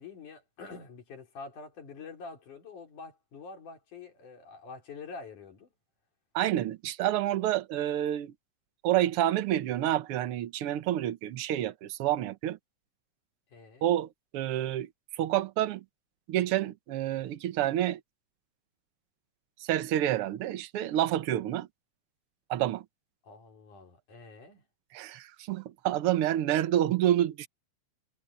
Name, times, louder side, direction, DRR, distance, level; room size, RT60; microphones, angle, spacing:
voice 1, 0.0-5.7 13.5-13.9 23.2-24.6, left 4 dB, 85° left, 5.8 m, -46 dB
voice 2, 6.3-8.3 8.8-12.6 13.8-14.9 15.2-15.8 16.3-18.0 19.6-21.7 22.5-22.8 24.9-27.5, right 12 dB, 60° right, 1.6 m, -28 dB
omnidirectional pair, 3.4 m